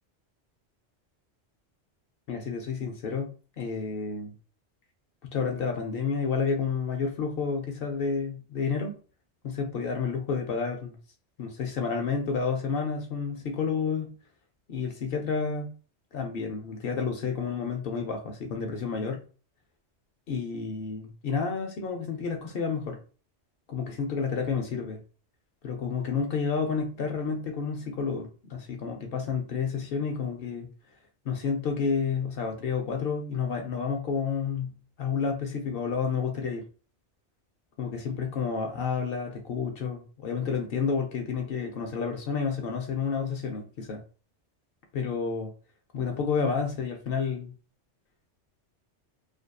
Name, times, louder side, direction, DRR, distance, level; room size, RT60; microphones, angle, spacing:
voice 1, 2.3-3.3 3.6-4.3 5.3-9.0 9.4-11.0 11.4-14.1 14.7-15.7 16.1-19.2 20.3-23.0 23.7-25.0 25.6-30.7 31.2-36.6 37.8-44.0 44.9-45.5 45.9-47.5, left 5 dB, 65° left, 0.7 m, -30 dB
2.5 x 2.5 x 2.2 m
omnidirectional pair, 1.2 m